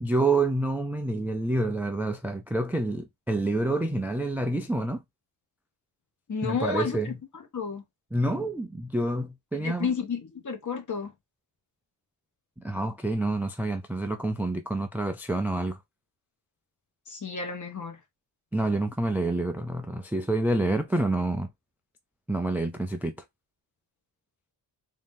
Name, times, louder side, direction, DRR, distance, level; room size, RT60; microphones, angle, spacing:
voice 1, 0.0-5.0 6.4-7.2 8.1-9.9 12.6-15.8 18.5-21.5 22.3-23.1, right 2 dB, 5° right, 0.3 m, -28 dB
voice 2, 6.3-7.1 7.5-7.8 9.6-11.1 17.1-18.0, left 5 dB, 45° left, 1.2 m, -31 dB
3.6 x 2.8 x 3.6 m
wide cardioid pair, 150°, 43 cm